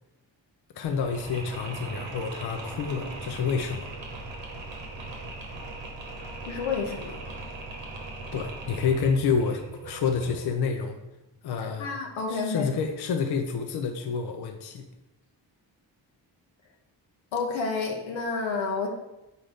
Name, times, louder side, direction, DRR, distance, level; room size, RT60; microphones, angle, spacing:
voice 1, 0.8-3.9 8.3-11.0 11.4-11.9 12.3-14.8, left 5 dB, 60° left, 5 dB, 0.6 m, -28 dB
Mechanisms, 0.8-10.6, right 2 dB, 80° right, 1.0 m, -39 dB
voice 2, 6.5-7.2 11.6-12.7 17.3-18.9, left 4 dB, 85° left, 2 dB, 0.9 m, -30 dB
4.0 x 3.7 x 3.5 m, 0.94 s
cardioid pair, 55°, 45 cm